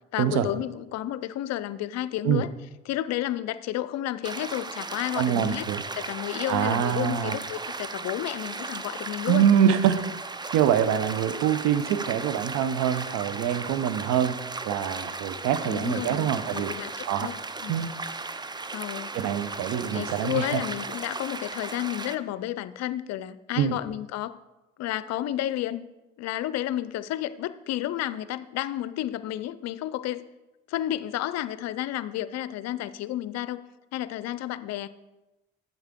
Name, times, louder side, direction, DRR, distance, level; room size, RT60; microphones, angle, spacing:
voice 1, 0.1-2.5 2.9-5.7 5.9-9.5 15.6-17.4 17.6-17.8 18.7-19.1 19.9-24.4 24.8-25.8 26.2-30.2 30.7-33.6 33.9-34.9, left 13 dB, 60° left, 15 dB, 0.5 m, -31 dB
sound 1, 4.2-22.2, right 3 dB, 15° right, 0.5 m, -36 dB
voice 2, 5.2-5.8 6.5-7.4 9.3-10.0 10.5-14.4 14.6-16.7 17.1-17.3 17.7-17.9 19.1-20.6 23.6-23.8, right 9 dB, 70° right, 12 dB, 0.7 m, -24 dB
8.8 x 7.2 x 3.7 m, 1.0 s
hypercardioid pair, 65°, 30 cm